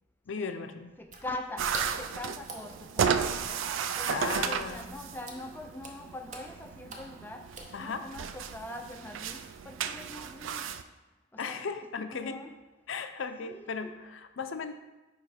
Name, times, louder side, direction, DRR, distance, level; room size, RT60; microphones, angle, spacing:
voice 1, 0.3-0.9 4.1-4.8 7.7-8.1 11.4-12.4 12.9-14.7, left 5 dB, 85° left, 8 dB, 0.5 m, -36 dB
voice 2, 1.0-1.7 2.0-3.7 3.9-7.5 7.8-10.7 11.3-11.7 12.0-12.5 13.4-13.9, left 2 dB, 10° left, 4 dB, 0.3 m, -43 dB
Water / Splash splatter, 1.0-8.2, right 2 dB, 40° right, 0.8 m, -47 dB
sound 1, 1.6-10.8, right 7 dB, 85° right, 0.4 m, -34 dB
8.6 x 3.1 x 4.9 m, 1.1 s
head